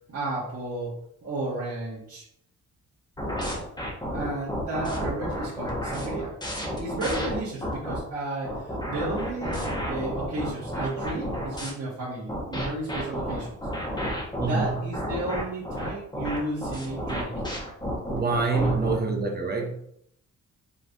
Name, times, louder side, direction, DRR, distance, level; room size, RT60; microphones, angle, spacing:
voice 1, 0.1-2.2 4.1-6.3 6.8-13.5 14.3-17.3 18.6-19.0, right 2 dB, 50° right, 1.7 m, -33 dB
sound 1, 3.2-8.0 8.5-11.7 12.3-19.0, equal, 15° left, 1.4 m, -31 dB
voice 2, 14.4-14.8 18.1-19.8, right 4 dB, 30° right, 1.0 m, -26 dB
5.5 x 3.3 x 2.7 m
cardioid pair, 90°, 31 cm